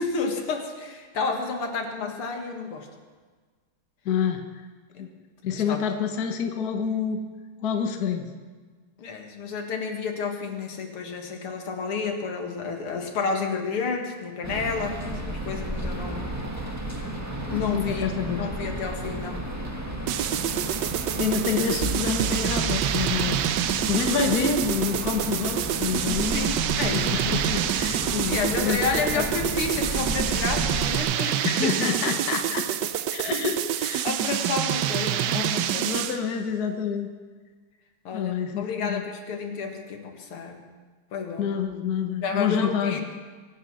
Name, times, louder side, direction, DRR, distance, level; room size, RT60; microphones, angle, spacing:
voice 1, 0.0-2.9 5.7-5.9 9.0-16.4 17.5-18.1 18.4-19.6 26.3-27.2 28.3-31.7 32.1-32.2 34.0-36.1 38.0-40.7 41.1-41.6 42.2-43.0, left 4 dB, 80° left, 3 dB, 2.6 m, -30 dB
voice 2, 4.0-4.6 5.0-5.1 5.4-7.2 7.6-8.3 17.5-18.5 21.1-23.4 23.9-26.5 26.9-28.8 29.1-29.2 31.4-32.6 33.1-34.0 35.1-37.1 38.1-39.0 41.4-43.0, left 7 dB, 50° left, 5 dB, 1.5 m, -28 dB
sound 1, 14.4-31.0, right 1 dB, 10° right, 1.5 m, -33 dB
sound 2, 20.1-36.3, right 11 dB, 70° right, 1.1 m, -27 dB
sound 3, 21.8-23.9, right 2 dB, 50° right, 0.8 m, -34 dB
23.5 x 9.3 x 6.3 m, 1.4 s
omnidirectional pair, 2.4 m